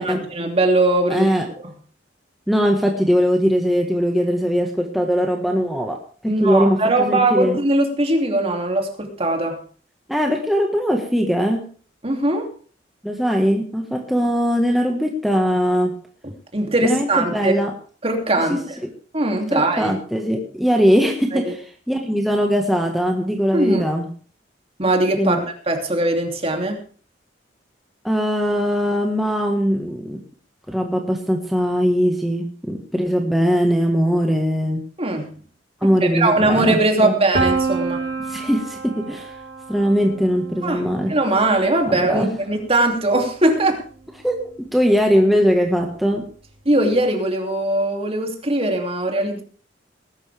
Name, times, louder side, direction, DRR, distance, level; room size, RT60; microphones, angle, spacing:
voice 1, 0.0-1.3 1.6-1.7 6.3-9.6 12.0-12.5 16.5-17.5 18.0-18.7 19.1-19.9 21.3-21.5 23.5-23.9 24.8-26.8 35.0-35.3 35.8-38.1 40.6-40.8 41.1-43.8 46.6-49.4, right 2 dB, 30° right, 3 dB, 2.8 m, -20 dB
voice 2, 1.1-1.5 2.5-6.8 7.1-7.6 10.1-11.7 13.0-15.9 16.8-17.7 18.5-18.6 19.5-21.6 21.9-24.1 25.2-25.4 28.0-30.2 30.7-34.8 35.8-37.1 38.3-39.3 39.7-41.1 42.1-42.3 44.2-46.3, equal, ahead, 1 dB, 1.6 m, -20 dB
Piano, 37.3-43.1, right 3 dB, 65° right, 4.4 m, -29 dB
20.0 x 11.5 x 3.5 m, 0.41 s
head